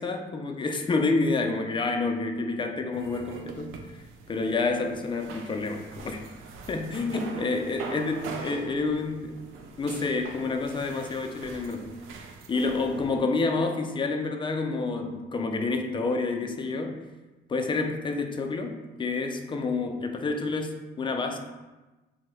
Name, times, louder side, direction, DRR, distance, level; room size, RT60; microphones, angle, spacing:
voice 1, 0.0-3.7 4.3-6.2 6.7-9.4 9.8-11.9 12.5-17.0 17.5-21.4, left 3 dB, 25° left, 4 dB, 0.4 m, -28 dB
sound 1, 2.9-13.2, right 4 dB, 85° right, 0.4 m, -43 dB
2.7 x 2.2 x 4.0 m, 1.1 s
cardioid pair, 90°, 20 cm